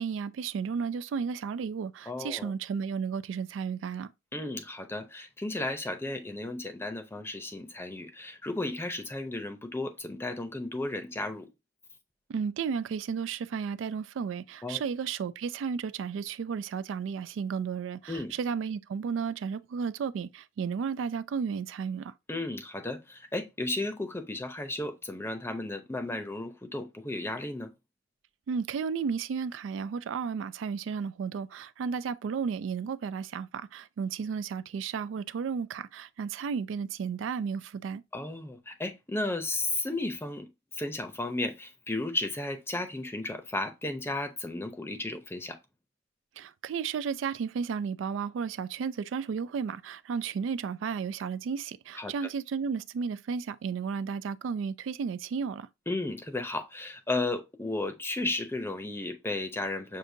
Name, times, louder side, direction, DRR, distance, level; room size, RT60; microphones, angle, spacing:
voice 1, 0.0-4.1 12.3-22.1 28.5-38.0 46.4-55.7, right 6 dB, 85° right, 0.3 m, -33 dB
voice 2, 2.1-2.5 4.3-11.5 14.6-14.8 18.1-18.3 22.3-27.7 38.1-45.6 52.0-52.1 55.9-60.0, left 2 dB, 15° left, 0.6 m, -34 dB
6.4 x 2.6 x 2.6 m
head